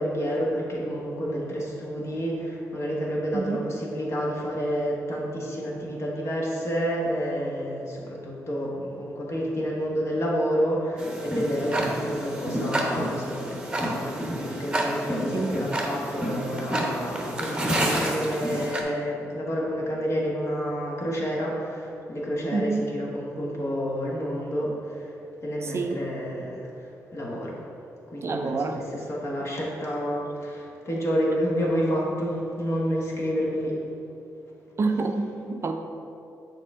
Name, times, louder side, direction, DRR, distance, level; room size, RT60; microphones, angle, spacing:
voice 1, 0.0-25.1 25.4-27.6 28.1-33.8, equal, 45° left, -3 dB, 1.4 m, -29 dB
voice 2, 3.3-3.7 15.3-15.6 22.5-22.9 25.6-26.0 28.2-28.8 34.8-35.7, right 3 dB, 45° right, 5 dB, 0.5 m, -28 dB
Tick-tock, 11.0-18.8, right 1 dB, 15° right, 0.9 m, -29 dB
6.5 x 4.1 x 3.6 m, 2.7 s
supercardioid pair, 60°, 6 cm